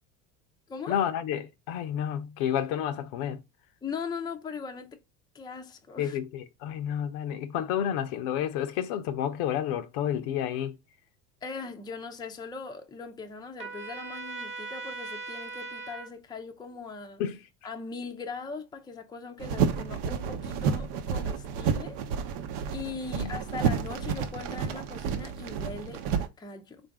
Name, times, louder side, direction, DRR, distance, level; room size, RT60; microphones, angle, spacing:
voice 1, 0.9-3.4 6.0-10.7 17.2-17.4 23.1-23.3, left 10 dB, 70° left, 0.7 m, -30 dB
voice 2, 3.8-5.0 5.3-6.2 11.4-17.2 17.6-22.0 22.7-26.8, left 5 dB, 10° left, 0.5 m, -40 dB
Trumpet, 13.6-16.1, right 3 dB, 25° right, 1.2 m, -39 dB
sound 1, 19.4-26.3, right 6 dB, 70° right, 0.7 m, -30 dB
3.8 x 2.5 x 3.4 m
hypercardioid pair, 90°, 46 cm